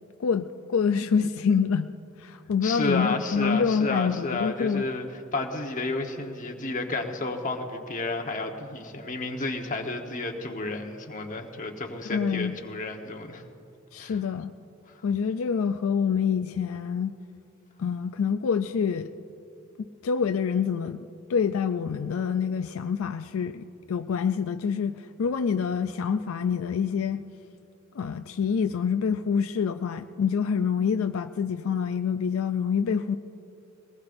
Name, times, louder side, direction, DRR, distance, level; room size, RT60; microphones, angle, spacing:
voice 1, 0.2-1.9 2.2-4.9 12.1-12.5 13.9-14.5 15.0-17.2 17.8-19.1 20.0-27.2 27.9-33.2, left 6 dB, 80° left, 8 dB, 0.4 m, -26 dB
voice 2, 2.6-5.0 5.3-13.4 14.0-14.2, left 2 dB, 40° left, 3 dB, 1.2 m, -31 dB
21.5 x 19.0 x 2.6 m, 2.6 s
head